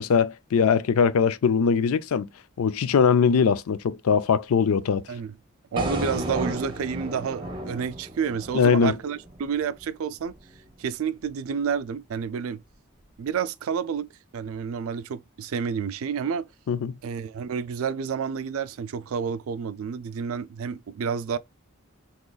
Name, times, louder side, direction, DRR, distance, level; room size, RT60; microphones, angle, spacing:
voice 1, 0.0-2.3 2.6-5.0 8.5-9.0 16.7-17.0, left 6 dB, 80° left, 0.4 m, -21 dB
voice 2, 5.7-10.3 10.8-12.6 13.2-16.5 17.0-21.4, right 6 dB, 75° right, 0.4 m, -30 dB
sound 1, 5.8-9.9, right 1 dB, 20° right, 0.8 m, -33 dB
3.8 x 3.0 x 2.3 m
head